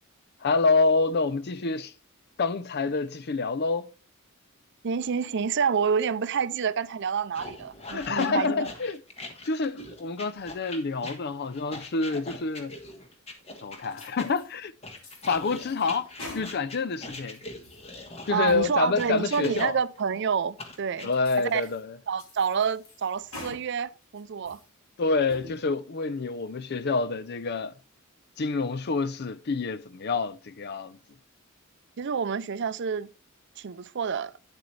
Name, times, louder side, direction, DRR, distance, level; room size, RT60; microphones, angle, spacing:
voice 1, 0.4-1.9 2.4-3.9 7.9-9.0 9.4-12.8 13.6-14.7 15.3-16.1 16.3-17.4 18.3-19.8 21.0-21.9 25.0-27.7 28.4-31.0, left 4 dB, 50° left, 0.5 m, -27 dB
voice 2, 4.8-8.7 18.3-21.1 21.4-21.7 22.1-24.6 32.0-33.1 33.6-34.4, right 6 dB, 55° right, 0.5 m, -28 dB
sound 1, 7.3-14.3 14.8-20.0 20.6-21.1, left 2 dB, 30° left, 1.5 m, -42 dB
sound 2, 13.9-14.5 15.0-16.9 17.2-17.9 18.3-18.7 19.2-19.3 19.9-20.0 20.6-20.7 21.1-21.8 22.2-23.6 24.0-24.7 25.1-25.5, left 2 dB, 75° left, 3.9 m, -45 dB
9.8 x 7.9 x 3.2 m
head